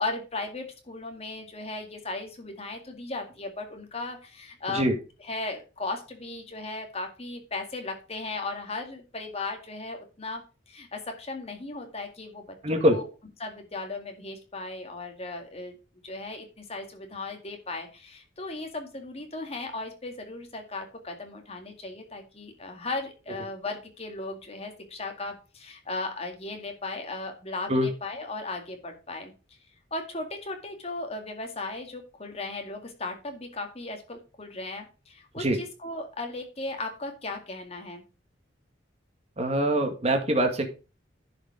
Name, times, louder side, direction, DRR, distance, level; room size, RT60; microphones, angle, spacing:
voice 1, 0.0-4.9 5.2-13.1 13.4-15.7 16.0-29.3 29.9-38.0, left 2 dB, 35° left, 4 dB, 2.1 m, -36 dB
voice 2, 12.6-13.0 27.7-27.9 35.4-35.6 39.4-40.6, right 1 dB, 35° right, 5 dB, 1.7 m, -23 dB
10.5 x 5.2 x 4.9 m, 0.33 s
head